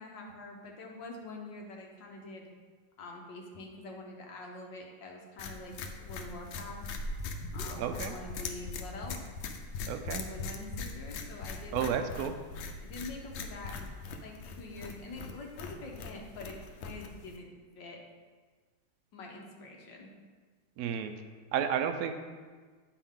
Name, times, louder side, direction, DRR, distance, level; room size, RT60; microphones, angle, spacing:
voice 1, 0.0-2.5 3.0-6.8 7.5-9.2 10.1-11.9 12.8-13.9 14.2-17.5 17.8-18.0 19.1-20.1, left 2 dB, 70° left, 0 dB, 1.7 m, -45 dB
sound 1, 5.4-17.4, left 4 dB, 85° left, 1.5 m, -41 dB
sound 2, 6.3-9.0, right 1 dB, 45° left, 0.7 m, -43 dB
voice 2, 7.8-8.1 9.9-10.3 11.7-12.3 20.8-21.1 21.5-22.1, right 8 dB, 75° right, 7 dB, 0.8 m, -31 dB
9.6 x 4.6 x 3.7 m, 1.5 s
omnidirectional pair, 2.1 m